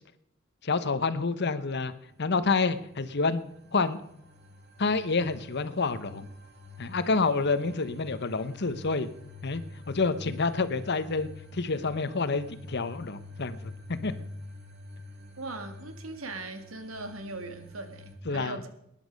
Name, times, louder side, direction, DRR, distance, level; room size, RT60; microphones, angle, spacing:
voice 1, 0.6-1.9 2.2-3.4 3.7-4.0 4.8-6.3 6.8-9.1 9.4-14.1 18.3-18.7, left 4 dB, 55° left, 13 dB, 1.0 m, -28 dB
sound 1, 1.8-18.2, left 2 dB, 55° right, 2.5 m, -47 dB
voice 2, 15.4-18.7, right 2 dB, 85° right, 7 dB, 2.0 m, -39 dB
19.5 x 10.5 x 5.3 m, 0.78 s
head